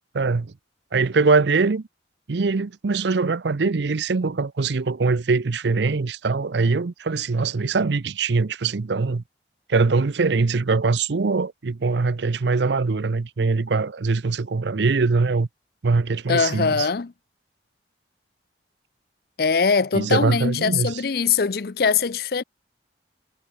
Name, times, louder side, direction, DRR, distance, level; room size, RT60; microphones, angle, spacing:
voice 1, 0.1-0.5 0.9-1.9 2.3-9.2 9.7-15.5 15.8-16.9 19.9-21.0, right 4 dB, 70° right, 0.6 m, -22 dB
voice 2, 16.3-17.1 19.4-22.4, left 5 dB, 55° left, 0.5 m, -22 dB
head